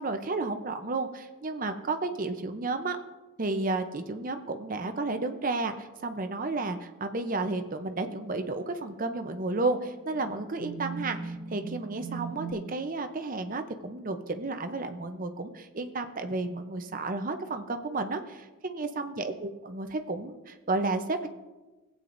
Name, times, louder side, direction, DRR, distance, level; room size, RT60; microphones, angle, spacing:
voice 1, 0.0-3.0 3.4-21.3, right 3 dB, 40° right, 7 dB, 0.6 m, -32 dB
sound 1, 7.9-8.3 9.0-9.1 9.9-12.5, right 5 dB, 70° right, 1.4 m, -39 dB
17.0 x 8.7 x 2.6 m, 1.2 s
head